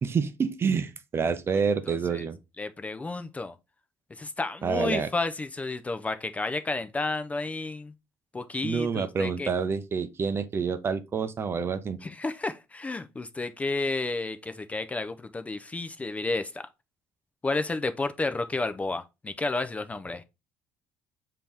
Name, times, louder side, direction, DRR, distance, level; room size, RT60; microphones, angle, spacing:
voice 1, 0.0-2.4 4.6-5.1 8.6-12.0, right 5 dB, 35° right, 0.6 m, -28 dB
voice 2, 1.5-2.2 2.6-3.6 4.2-7.9 8.3-9.5 12.0-16.6 17.4-20.2, left 3 dB, 20° left, 0.5 m, -31 dB
5.2 x 2.9 x 3.2 m
supercardioid pair, 90°, 7 cm